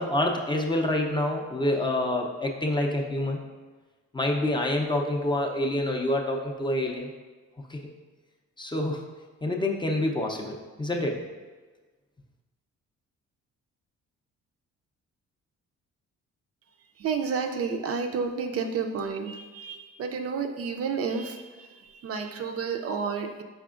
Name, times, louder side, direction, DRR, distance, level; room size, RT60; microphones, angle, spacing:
voice 1, 0.0-3.4 4.1-7.1 7.7-7.8 8.6-9.1 9.4-11.3, left 1 dB, 15° left, 0 dB, 0.5 m, -27 dB
voice 2, 17.0-21.7 22.0-23.4, right 5 dB, 50° right, 5 dB, 0.4 m, -30 dB
4.8 x 4.2 x 2.4 m, 1.3 s
cardioid pair, 90°, 30 cm